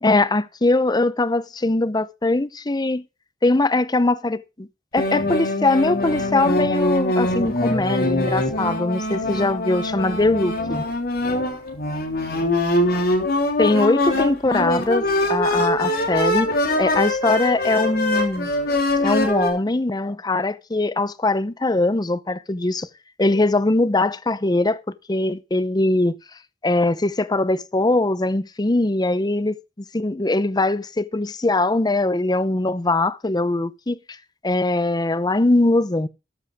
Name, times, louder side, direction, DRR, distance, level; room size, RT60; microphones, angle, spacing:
voice 1, 0.0-3.0 3.4-4.7 4.9-10.8 13.6-16.5 16.8-18.5 19.0-22.9 23.2-24.8 25.1-26.2 26.6-29.6 29.9-34.0 34.4-36.1, left 2 dB, 25° left, 0.7 m, -21 dB
sound 1, 5.0-19.5, left 1 dB, 60° left, 3.5 m, -23 dB
13.5 x 10.5 x 3.5 m
head